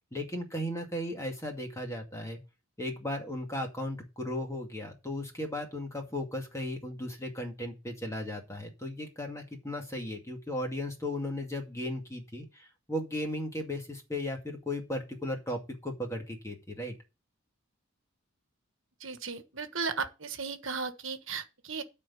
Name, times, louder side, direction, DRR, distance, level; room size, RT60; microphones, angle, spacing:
voice 1, 0.1-2.4 2.8-17.0, left 1 dB, 15° left, 2.1 m, -36 dB
voice 2, 19.0-21.8, right 5 dB, 65° right, 1.4 m, -35 dB
12.5 x 4.5 x 6.9 m
head